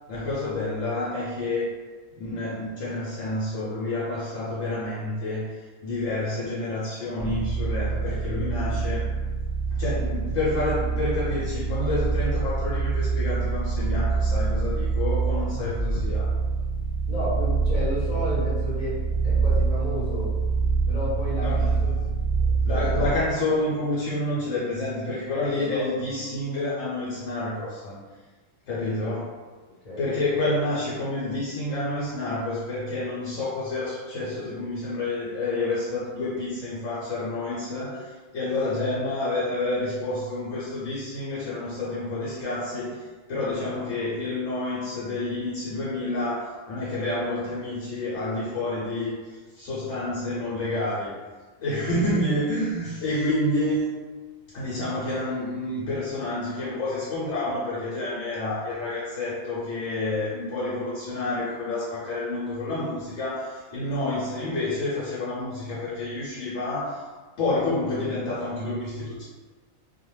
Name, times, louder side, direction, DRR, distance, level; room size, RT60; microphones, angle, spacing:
voice 1, 0.1-1.7 2.2-9.1 9.7-16.4 21.4-21.9 22.6-28.0 28.7-29.3 30.0-51.1 51.6-53.9 54.5-67.1 67.4-69.2, left 2 dB, 75° left, -8 dB, 1.0 m, -29 dB
sound 1, 7.2-23.3, right 4 dB, 30° right, 0.9 m, -25 dB
voice 2, 17.1-20.3 20.9-22.1 22.7-23.1 25.5-25.8 29.0-29.1 29.8-30.3, equal, 35° left, -9 dB, 0.7 m, -32 dB
2.3 x 2.2 x 3.0 m, 1.3 s
omnidirectional pair, 1.4 m